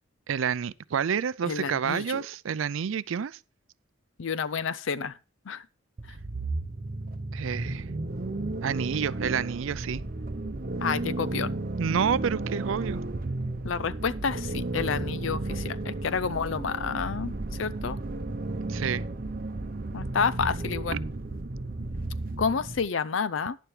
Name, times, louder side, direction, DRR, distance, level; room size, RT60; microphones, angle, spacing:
voice 1, 0.3-3.4 7.3-7.9 8.6-10.0 11.8-13.0 18.7-19.0 20.9-21.0, right 7 dB, 80° right, 0.4 m, -29 dB
voice 2, 1.4-2.2 4.2-5.2 5.5-5.6 10.8-11.5 13.6-17.3 17.6-18.0 19.9-21.0 22.4-23.6, left 6 dB, 75° left, 0.5 m, -29 dB
sound 1, 6.0-22.8, right 2 dB, 45° right, 0.7 m, -33 dB
11.5 x 10.0 x 3.3 m
head